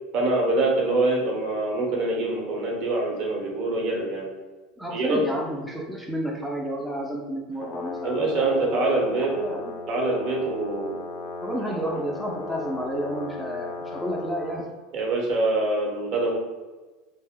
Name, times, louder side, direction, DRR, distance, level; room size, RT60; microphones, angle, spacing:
voice 1, 0.1-4.3 4.9-5.2 8.0-9.3 9.9-11.0 14.9-16.4, right 2 dB, 55° right, -1 dB, 1.0 m, -24 dB
voice 2, 4.8-9.8 11.4-14.7, equal, ahead, -2 dB, 0.4 m, -31 dB
Brass instrument, 7.5-14.7, left 2 dB, 55° left, 0.6 m, -36 dB
2.4 x 2.1 x 3.6 m, 1.3 s
supercardioid pair, 115°, 0 cm